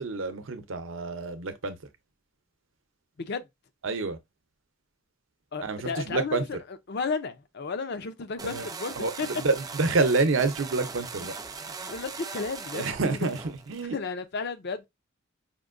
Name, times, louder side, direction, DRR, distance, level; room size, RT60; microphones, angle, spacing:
voice 1, 0.0-1.8 3.8-4.2 5.6-6.4 8.4-8.7 9.0-11.3 11.6-11.7 12.7-13.4 13.7-13.9, right 3 dB, 65° right, 0.7 m, -28 dB
voice 2, 5.5-9.3 11.2-11.3 11.8-13.3 13.8-14.9, left 4 dB, 50° left, 0.5 m, -33 dB
sound 1, 8.4-13.8, right 4 dB, 20° right, 0.3 m, -40 dB
5.1 x 2.6 x 2.5 m
head